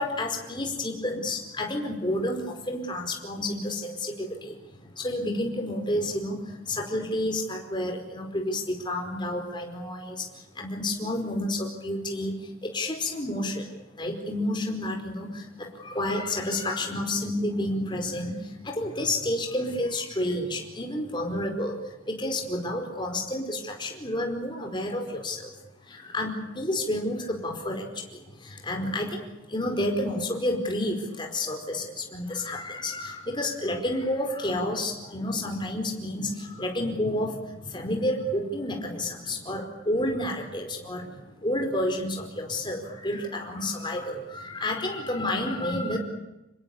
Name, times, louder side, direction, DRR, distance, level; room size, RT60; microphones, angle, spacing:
voice 1, 0.0-25.5 25.8-46.0, left 1 dB, 25° left, 2 dB, 4.9 m, -30 dB
27.0 x 21.0 x 8.5 m, 0.96 s
head